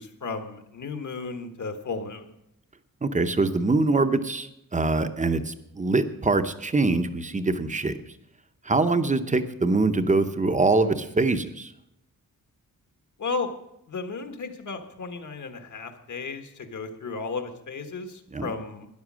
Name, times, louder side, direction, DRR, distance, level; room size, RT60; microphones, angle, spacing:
voice 1, 0.0-2.3 13.2-13.5 13.9-18.9, left 4 dB, 60° left, 7 dB, 1.5 m, -34 dB
voice 2, 3.0-7.9 8.7-11.7 18.3-18.4, right 3 dB, 20° right, 10 dB, 0.8 m, -24 dB
13.0 x 10.5 x 6.2 m, 0.82 s
wide cardioid pair, 165°, 33 cm